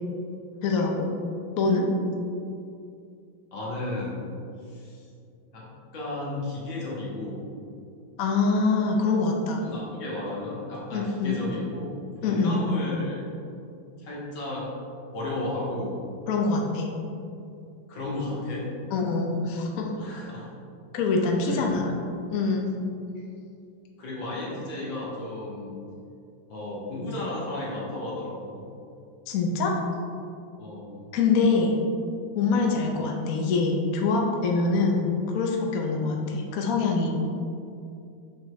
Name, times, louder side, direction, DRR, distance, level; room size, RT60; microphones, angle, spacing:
voice 1, 0.6-1.1 1.6-1.9 8.2-9.6 10.9-11.4 12.2-12.6 16.3-16.9 18.9-19.9 20.9-21.9 22.3-22.7 29.3-29.8 31.1-31.7 32.3-37.1, left 4 dB, 60° left, 0 dB, 0.9 m, -24 dB
voice 2, 3.5-4.2 4.6-5.1 5.5-5.6 5.9-7.5 9.6-11.9 12.2-13.2 14.0-14.7 15.1-16.0 17.9-18.7 20.0-20.5 21.0-22.0 24.0-25.8 26.5-28.6 30.6-31.0 32.5-32.8, left 2 dB, 75° left, -6 dB, 2.3 m, -34 dB
6.2 x 5.8 x 3.2 m, 2.5 s
omnidirectional pair, 2.1 m